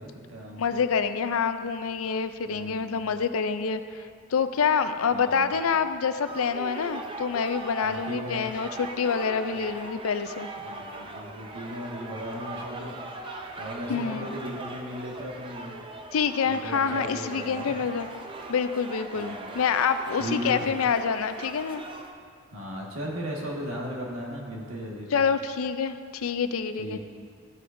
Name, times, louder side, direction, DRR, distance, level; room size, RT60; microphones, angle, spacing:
voice 1, 0.0-0.8 2.5-3.1 5.1-5.6 7.8-8.5 10.6-12.9 13.6-15.8 16.4-17.8 19.1-19.5 20.2-20.7 22.5-25.2 26.8-27.0, equal, 85° right, -2 dB, 1.6 m, -36 dB
voice 2, 0.6-10.5 13.9-14.3 16.1-18.1 18.5-21.8 25.1-27.0, left 6 dB, 85° left, 10 dB, 0.4 m, -27 dB
sound 1, 6.3-22.1, right 2 dB, 25° right, 0.5 m, -40 dB
13.0 x 8.4 x 2.6 m, 2.2 s
head